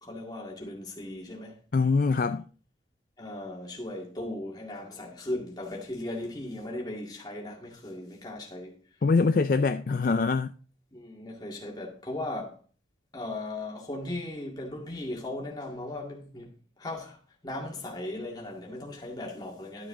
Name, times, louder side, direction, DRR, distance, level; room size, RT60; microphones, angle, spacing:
voice 1, 0.0-1.6 3.2-8.8 10.9-12.5 13.1-16.5 16.8-17.2 17.4-19.9, left 1 dB, 20° left, 2.1 m, -37 dB
voice 2, 1.7-2.4 9.0-10.5, left 4 dB, 50° left, 0.4 m, -24 dB
11.5 x 6.9 x 3.8 m
head